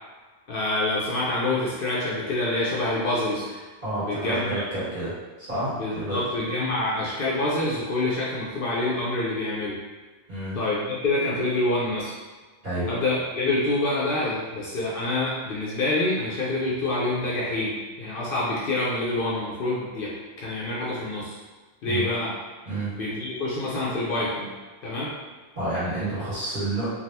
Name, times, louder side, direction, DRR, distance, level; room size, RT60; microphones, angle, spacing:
voice 1, 0.5-3.6 4.0-4.5 5.8-9.8 10.5-12.1 12.8-21.3 21.8-22.3 23.0-24.5 24.8-25.1, left 2 dB, 60° left, -6 dB, 0.7 m, -26 dB
voice 2, 3.8-5.1 5.4-6.2 10.3-10.6 12.6-12.9 21.8-22.1 22.6-22.9 25.5-26.9, right 1 dB, 45° right, -11 dB, 1.6 m, -29 dB
3.3 x 2.3 x 2.7 m, 1.3 s
omnidirectional pair, 1.2 m